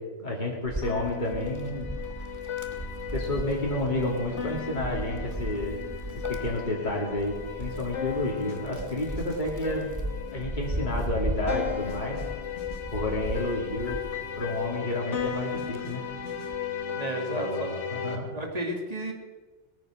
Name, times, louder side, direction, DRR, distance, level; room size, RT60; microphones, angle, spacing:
voice 1, 0.0-1.9 3.1-5.8 6.3-10.0 10.3-12.2 12.9-14.0 14.4-16.0 17.3-18.4, left 1 dB, 40° left, -3 dB, 2.8 m, -30 dB
Wind, 0.6-14.8 15.2-16.7, right 1 dB, 15° right, 1.2 m, -37 dB
sound 1, 0.8-18.2, left 7 dB, 75° left, 1.8 m, -36 dB
voice 2, 16.9-17.7 18.3-19.1, right 1 dB, 35° right, 2 dB, 2.2 m, -32 dB
20.0 x 9.4 x 6.3 m, 1.3 s
omnidirectional pair, 1.2 m